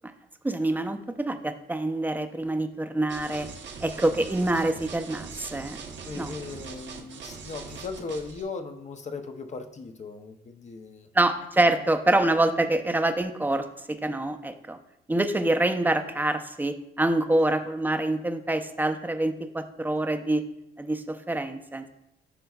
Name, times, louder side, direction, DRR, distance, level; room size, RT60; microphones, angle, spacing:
voice 1, 0.4-3.5 3.8-5.8 6.1-6.3 11.1-14.8 15.1-20.4 20.8-21.9, right 2 dB, 10° right, 7 dB, 0.6 m, -26 dB
sound 1, 3.1-8.4, right 5 dB, 65° right, 1.0 m, -41 dB
voice 2, 6.1-11.1, left 4 dB, 35° left, 6 dB, 0.6 m, -38 dB
12.0 x 4.5 x 2.3 m, 0.83 s
cardioid pair, 90°, 20 cm